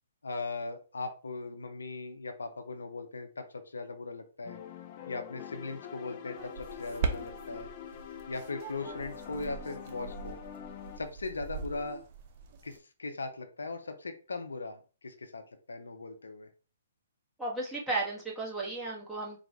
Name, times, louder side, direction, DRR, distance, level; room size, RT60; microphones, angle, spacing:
voice 1, 0.2-4.6 5.1-7.7 8.3-10.4 11.0-12.0 12.6-15.4 15.7-16.5, left 3 dB, 85° left, 6 dB, 0.7 m, -39 dB
sound 1, 4.4-11.0, left 9 dB, 40° left, 0.5 m, -45 dB
sound 2, 6.4-12.8, right 5 dB, 40° right, 0.7 m, -40 dB
voice 2, 17.4-19.4, right 2 dB, ahead, -6 dB, 1.4 m, -34 dB
4.0 x 2.5 x 3.5 m, 0.36 s
hypercardioid pair, 140°, 0 cm